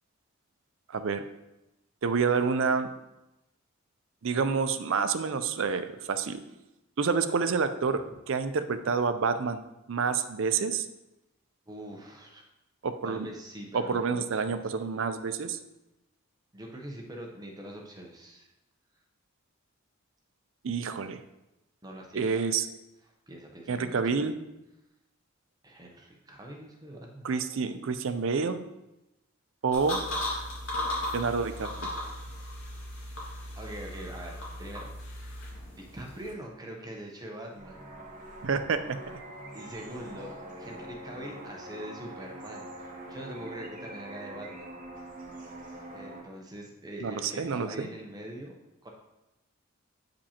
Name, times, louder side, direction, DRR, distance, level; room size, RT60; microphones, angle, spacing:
voice 1, 0.9-1.2 2.0-2.9 4.2-6.4 7.0-9.6 9.9-10.9 12.8-13.3 13.7-15.6 20.6-21.2 22.1-22.7 23.7-24.4 27.2-28.6 29.6-30.0 31.1-31.9 38.4-39.2 47.0-47.9, right 5 dB, 60° right, 10 dB, 0.4 m, -28 dB
voice 2, 11.7-12.4 13.0-14.6 16.5-18.5 21.8-22.3 23.3-24.2 25.6-27.3 33.6-34.9 35.7-37.8 39.5-42.7 43.1-44.7 45.9-48.5 48.8-48.9, right 1 dB, 15° right, 0 dB, 0.7 m, -43 dB
sound 1, 29.7-36.3, left 1 dB, 65° left, 2.2 m, -36 dB
sound 2, 37.5-46.2, right 1 dB, 35° right, 1.1 m, -44 dB
8.3 x 5.1 x 2.9 m, 0.95 s
head